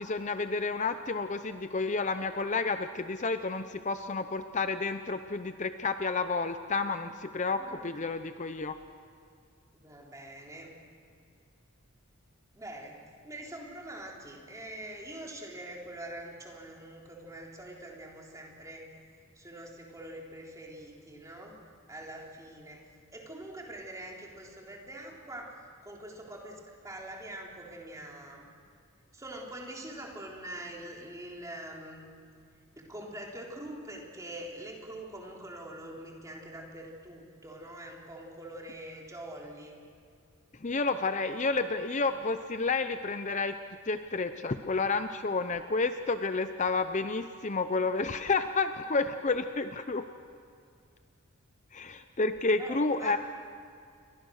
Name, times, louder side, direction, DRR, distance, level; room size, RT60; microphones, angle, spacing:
voice 1, 0.0-8.8 40.6-43.6 43.9-50.0 51.7-53.2, left 3 dB, 35° left, 9 dB, 0.7 m, -30 dB
voice 2, 7.6-7.9 9.7-10.7 12.5-13.0 13.2-18.9 19.4-21.6 21.9-22.8 23.1-25.6 25.8-28.5 29.1-32.1 32.8-39.8 52.6-53.2, right 1 dB, 15° right, -1 dB, 3.6 m, -44 dB
29.0 x 23.0 x 6.5 m, 2.4 s
head